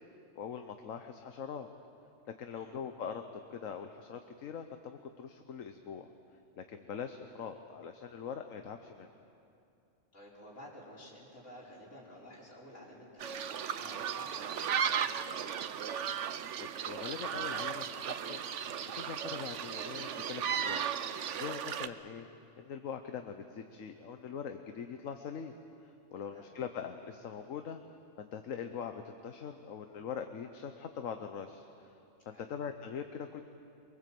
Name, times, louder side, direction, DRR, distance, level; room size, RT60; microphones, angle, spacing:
voice 1, 0.3-1.7 2.4-3.2 3.5-6.1 6.6-9.1 16.6-18.7 18.9-22.3 22.6-25.5 25.8-27.8 28.2-31.9 32.3-33.4, left 7 dB, 80° left, 6 dB, 1.3 m, -42 dB
voice 2, 10.1-15.5 26.2-26.4 32.3-32.5, equal, 65° left, -4 dB, 5.7 m, -52 dB
sound 1, 13.2-21.9, right 8 dB, 70° right, 1.1 m, -36 dB
23.5 x 23.5 x 7.7 m, 2.6 s
omnidirectional pair, 1.3 m